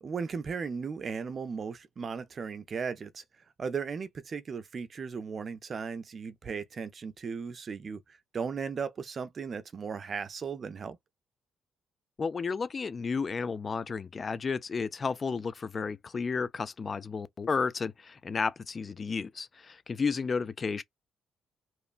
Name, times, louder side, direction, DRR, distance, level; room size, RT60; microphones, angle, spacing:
voice 1, 0.0-3.2 3.6-8.0 8.3-11.0, right 5 dB, 45° right, 0.5 m, -36 dB
voice 2, 12.2-20.8, left 5 dB, 40° left, 0.3 m, -32 dB
3.0 x 2.1 x 2.4 m
cardioid pair, 90°, 0 cm